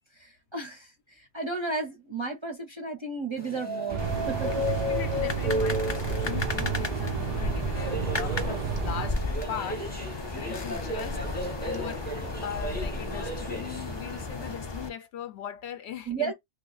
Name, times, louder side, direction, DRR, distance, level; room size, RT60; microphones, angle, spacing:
voice 1, 0.2-0.9 1.2-4.5 16.1-16.3, right 4 dB, 30° right, 0.6 m, -33 dB
sound 1, 3.4-14.5, equal, 10° left, 0.8 m, -35 dB
sound 2, 3.9-9.1, right 9 dB, 80° right, 0.3 m, -32 dB
sound 3, 4.0-14.9, left 2 dB, 35° left, 0.4 m, -34 dB
voice 2, 4.5-9.8 10.3-12.1 12.4-16.3, left 9 dB, 70° left, 0.8 m, -39 dB
2.8 x 2.5 x 3.8 m
omnidirectional pair, 1.2 m